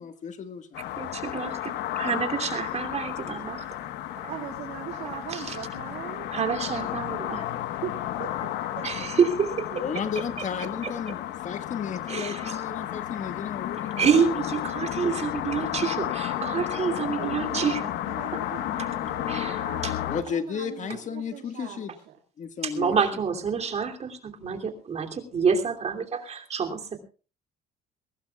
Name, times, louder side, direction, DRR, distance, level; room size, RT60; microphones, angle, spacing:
voice 1, 0.0-0.9 6.7-7.0 9.8-14.1 20.1-21.9 22.4-22.9, left 7 dB, 45° left, 10 dB, 1.8 m, -34 dB
sound 1, 0.7-20.2, left 12 dB, 85° left, 1.3 m, -32 dB
voice 2, 1.0-3.7 5.3-5.6 6.3-7.5 8.8-9.3 12.1-12.6 14.0-17.9 18.8-18.9 19.3-19.9 22.6-27.0, right 6 dB, 40° right, 4 dB, 2.9 m, -28 dB
voice 3, 4.3-6.3 7.8-7.9 8.2-8.9 9.2-9.8 17.2-22.2, right 10 dB, 80° right, 1 dB, 2.4 m, -41 dB
22.0 x 17.5 x 2.4 m, 0.35 s
cardioid pair, 110°, 17 cm